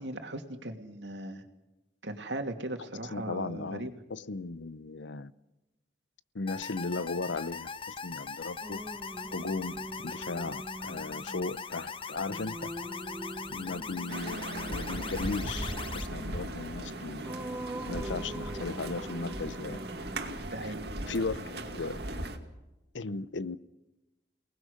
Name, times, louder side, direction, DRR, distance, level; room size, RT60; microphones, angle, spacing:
voice 1, 0.0-1.4 2.0-3.9 20.5-20.8, right 1 dB, 80° right, 2.6 m, -38 dB
voice 2, 3.1-5.3 6.3-8.8 9.3-12.7 13.5-17.2 17.9-19.8 20.6-20.7 21.1-22.0 22.9-23.6, left 3 dB, 85° left, 0.8 m, -36 dB
sound 1, 6.5-16.1, left 5 dB, 30° left, 0.8 m, -41 dB
Singing, 8.6-20.3, right 1 dB, 10° right, 0.8 m, -43 dB
sound 2, 14.1-22.4, right 1 dB, 65° right, 2.3 m, -38 dB
28.5 x 19.5 x 6.6 m
head